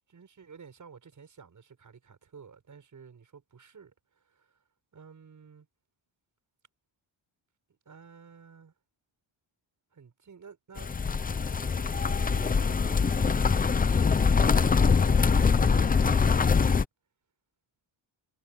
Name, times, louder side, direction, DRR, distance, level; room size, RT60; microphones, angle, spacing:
voice 1, 0.0-4.6 4.9-5.7 7.9-8.7 9.9-10.9 11.7-13.3 14.4-16.8, right 6 dB, 40° right, 7.1 m, -51 dB
sound 1, 10.8-16.8, left 5 dB, 20° left, 0.6 m, -23 dB
cardioid pair, 145°, 48 cm